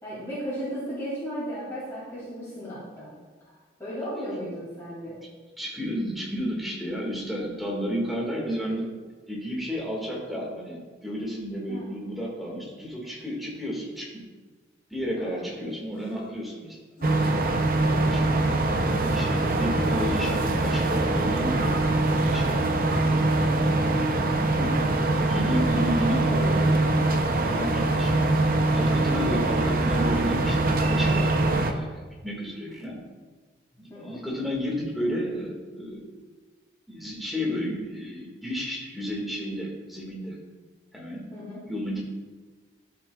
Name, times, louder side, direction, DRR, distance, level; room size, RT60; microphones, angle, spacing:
voice 1, 0.0-3.1 3.8-5.2 11.7-11.9 15.2-15.6 19.5-19.8 24.6-24.8 33.9-34.2 41.3-41.6, equal, 15° left, -10 dB, 2.4 m, -35 dB
voice 2, 5.6-8.9 9.3-14.2 14.9-16.8 17.9-18.3 18.9-23.6 25.3-26.8 27.4-28.1 28.7-33.0 33.8-36.2 36.9-40.4 40.9-41.3 41.7-42.0, equal, ahead, -4 dB, 1.8 m, -32 dB
sound 1, 15.9-16.4 17.0-17.2 17.9-18.2 19.0-19.5 20.1-20.5 21.3-21.7 22.6-22.8 23.7-24.1 24.9-25.5 26.3-26.6 27.6-27.9 28.8-29.0 29.9-30.2 31.1-31.4, left 1 dB, 40° left, 2.3 m, -45 dB
sound 2, 17.0-31.7, right 2 dB, 45° right, 0.6 m, -23 dB
13.5 x 5.9 x 2.3 m, 1.4 s
head